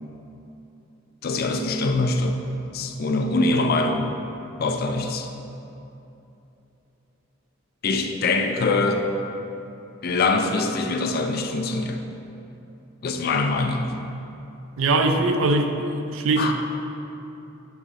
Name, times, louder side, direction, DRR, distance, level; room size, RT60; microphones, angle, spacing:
voice 1, 1.2-2.4 2.7-4.2 4.6-5.3 7.8-9.1 10.0-12.0 13.0-13.9 16.4-16.5, left 3 dB, 50° left, 5 dB, 0.4 m, -23 dB
voice 2, 14.8-16.5, right 2 dB, 85° right, 5 dB, 0.5 m, -22 dB
6.9 x 4.0 x 3.6 m, 2.9 s
head